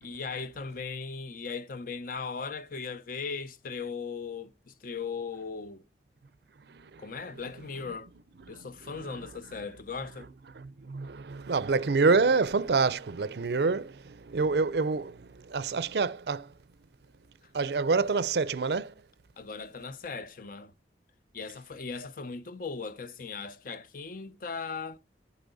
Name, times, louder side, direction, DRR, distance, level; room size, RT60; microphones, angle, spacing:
voice 1, 0.0-5.8 7.0-8.1 8.5-10.3 17.4-17.5 19.4-20.7 21.3-25.0, left 5 dB, 50° left, 0.7 m, -38 dB
voice 2, 6.7-7.0 8.5-8.6 10.6-16.5 17.5-18.9, right 4 dB, 60° right, 0.5 m, -27 dB
12.0 x 8.3 x 4.0 m
head